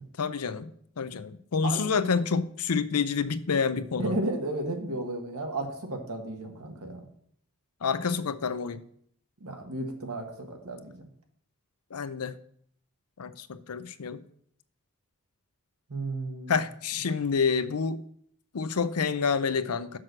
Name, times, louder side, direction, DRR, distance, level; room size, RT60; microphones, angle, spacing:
voice 1, 0.2-0.7 1.0-4.2 7.8-8.8 11.9-12.4 13.2-14.2 16.5-18.0 18.5-20.0, left 5 dB, 90° left, 0.6 m, -28 dB
voice 2, 4.0-7.1 9.4-11.1 15.9-16.6, right 2 dB, 85° right, 1.7 m, -33 dB
6.2 x 6.1 x 6.4 m
head